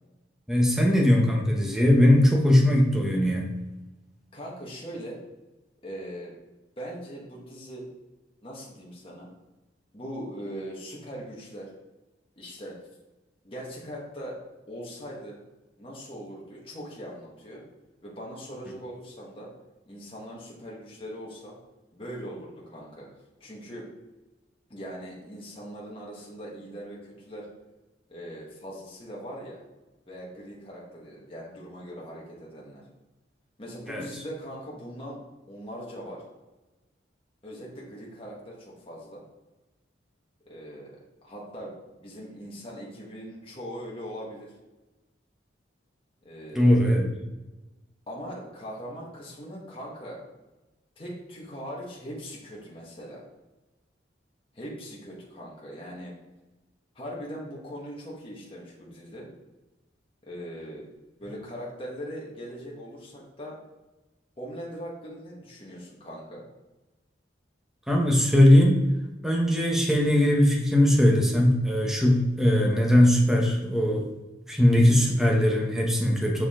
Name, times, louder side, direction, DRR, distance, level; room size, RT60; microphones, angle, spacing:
voice 1, 0.5-3.5 33.9-34.0 46.5-47.1 67.9-68.8 69.2-74.1 74.5-76.5, left 1 dB, ahead, -1 dB, 1.1 m, -20 dB
voice 2, 4.3-5.2 5.8-6.3 6.8-7.8 8.4-9.3 9.9-11.7 12.4-12.8 13.4-14.4 14.7-15.4 15.8-17.6 18.0-19.5 19.9-21.5 21.9-23.1 23.4-23.9 24.7-27.5 28.1-29.6 30.1-32.8 33.6-35.2 35.5-36.2 37.4-39.2 40.4-41.7 42.0-44.5 46.2-46.8 48.1-50.2 51.0-53.2 54.5-56.1 56.9-59.3 60.2-60.9 61.2-63.6 64.4-66.4, equal, 30° left, -4 dB, 1.5 m, -40 dB
6.7 x 5.0 x 3.7 m, 1.1 s
head